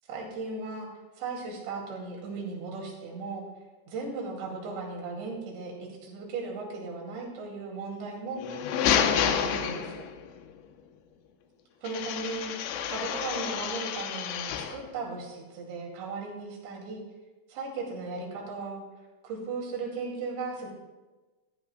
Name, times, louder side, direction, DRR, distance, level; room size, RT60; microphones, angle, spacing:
voice 1, 0.1-0.9 1.2-3.4 3.9-5.7 6.0-8.4 9.0-10.0 11.8-17.0 17.5-18.8 19.2-20.7, right 3 dB, 75° right, -1 dB, 4.6 m, -37 dB
sound 1, 8.4-10.3 11.8-14.8, left 8 dB, 85° left, 3.1 m, -29 dB
15.5 x 14.0 x 2.3 m, 1.2 s
omnidirectional pair, 5.2 m